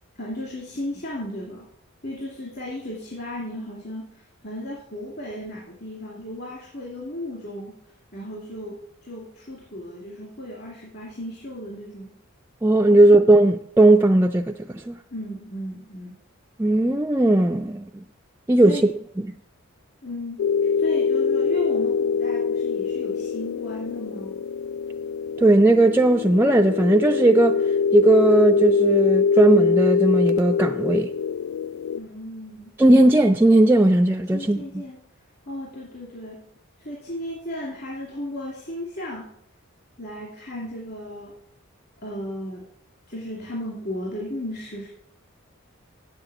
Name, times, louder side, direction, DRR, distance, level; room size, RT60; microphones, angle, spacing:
voice 1, 0.2-1.7 2.0-7.8 8.1-12.2 12.9-13.2 15.1-16.2 18.6-18.9 20.0-20.4 20.8-24.4 31.9-32.7 34.3-35.0 35.5-36.5 36.8-39.3 40.0-41.4 42.0-42.7 43.1-44.9, left 1 dB, 50° left, 2.4 m, -35 dB
voice 2, 12.6-15.0 16.6-18.0 18.5-18.9 25.4-27.6 27.9-31.1 32.8-34.6, right 2 dB, 10° right, 0.3 m, -17 dB
sound 1, 20.4-32.0, left 6 dB, 80° left, 0.3 m, -23 dB
7.7 x 7.5 x 8.0 m
head